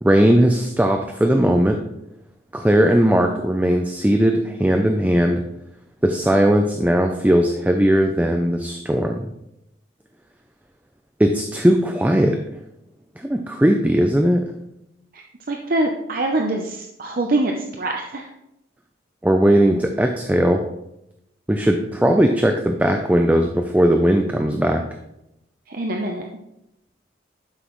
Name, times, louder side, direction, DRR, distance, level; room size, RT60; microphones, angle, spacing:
voice 1, 0.0-1.8 2.5-5.4 6.0-9.2 11.2-12.4 13.2-14.4 19.2-20.6 21.5-24.8, equal, 10° right, 4 dB, 0.5 m, -18 dB
voice 2, 15.1-18.3 25.7-26.2, right 2 dB, 50° right, 2 dB, 0.7 m, -24 dB
11.5 x 6.2 x 3.1 m, 0.84 s
head